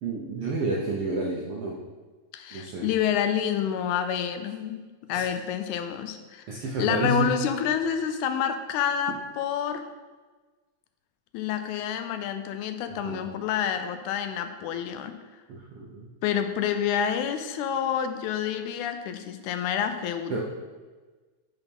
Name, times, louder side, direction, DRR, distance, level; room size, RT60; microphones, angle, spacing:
voice 1, 0.0-1.8 2.5-2.9 5.1-5.2 6.5-7.3 13.0-13.2 15.5-16.1 20.3-20.4, right 3 dB, 80° right, -3 dB, 1.3 m, -30 dB
voice 2, 2.3-6.4 6.8-9.9 11.3-15.1 16.2-20.4, left 8 dB, 85° left, 8 dB, 2.0 m, -28 dB
5.6 x 4.2 x 5.2 m, 1.3 s
omnidirectional pair, 3.4 m